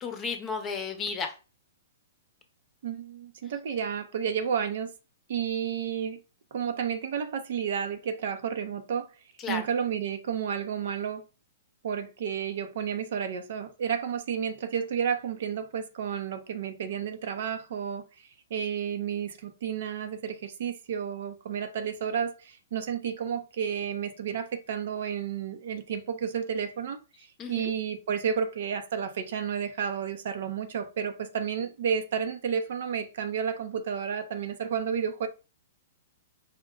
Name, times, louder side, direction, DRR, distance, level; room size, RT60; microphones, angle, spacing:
voice 1, 0.0-1.3 9.4-9.6 27.4-27.7, left 5 dB, 20° left, 0.8 m, -33 dB
voice 2, 2.8-4.9 5.3-6.2 6.5-9.1 9.5-11.2 11.8-35.3, right 7 dB, 65° right, 0.7 m, -31 dB
5.1 x 2.2 x 3.7 m
hypercardioid pair, 150°, 0 cm